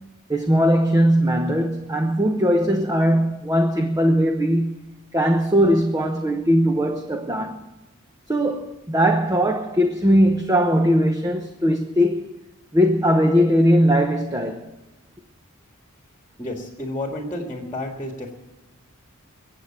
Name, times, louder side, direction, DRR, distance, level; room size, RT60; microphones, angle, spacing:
voice 1, 0.3-7.7 8.3-12.2 12.7-14.7, equal, 15° right, 0.9 m, -20 dB
voice 2, 16.4-18.3, left 1 dB, 15° left, 1.9 m, -31 dB
22.5 x 8.3 x 7.4 m
head